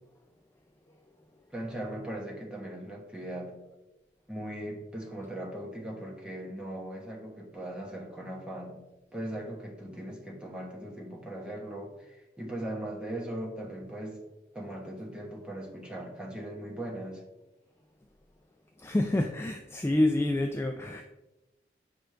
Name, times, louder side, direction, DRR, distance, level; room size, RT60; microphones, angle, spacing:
voice 1, 1.5-3.6 4.3-8.8 9.1-14.2 14.5-17.2, right 1 dB, 5° right, -2 dB, 1.2 m, -39 dB
voice 2, 18.8-21.0, left 1 dB, 15° left, 4 dB, 0.3 m, -27 dB
7.9 x 5.2 x 3.3 m, 1.0 s
head